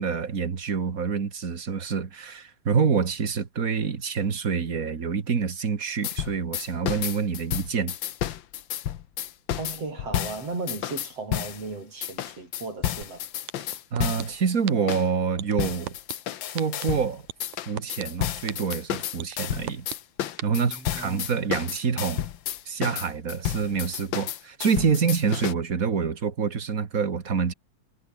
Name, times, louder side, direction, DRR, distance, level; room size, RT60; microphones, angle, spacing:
voice 1, 0.0-7.9 13.9-15.9 16.5-17.2 17.7-19.8 20.2-22.3 22.6-27.5, right 6 dB, 35° right, 1.7 m, -27 dB
sound 1, 6.0-11.6 12.0-14.4 14.9-15.1 15.6-17.1 17.4-25.5, left 11 dB, 65° left, 1.2 m, -31 dB
voice 2, 9.6-13.2 20.6-21.2, right 3 dB, 55° right, 8.2 m, -36 dB
sound 2, 13.0-13.1 13.5-14.2 14.7-14.9 15.4-16.1 16.6-16.8 17.3-18.0 18.5-18.7 19.2-20.0 20.4-20.5, right 14 dB, 85° right, 2.5 m, -34 dB
omnidirectional pair, 3.3 m